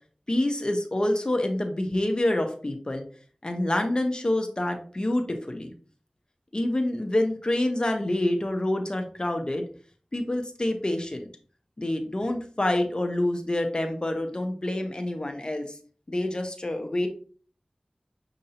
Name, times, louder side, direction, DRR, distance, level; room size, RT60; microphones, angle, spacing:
voice 1, 0.3-3.0 3.4-5.7 6.5-9.6 10.1-11.3 11.8-15.8 16.1-17.1, left 1 dB, 40° left, 5 dB, 0.7 m, -27 dB
6.5 x 2.6 x 2.8 m, 0.43 s
wide cardioid pair, 55°, 2 cm